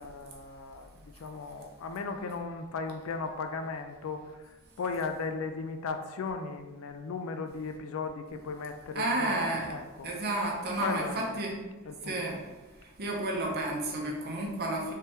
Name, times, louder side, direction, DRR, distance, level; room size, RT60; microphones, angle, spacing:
voice 1, 0.0-10.1 10.8-11.3 11.8-12.4, left 4 dB, 65° left, 6 dB, 0.3 m, -37 dB
voice 2, 8.9-9.7 10.0-11.6 12.0-12.4 12.8-14.9, right 1 dB, 45° right, 0 dB, 0.7 m, -31 dB
3.3 x 3.2 x 2.8 m, 1.2 s
head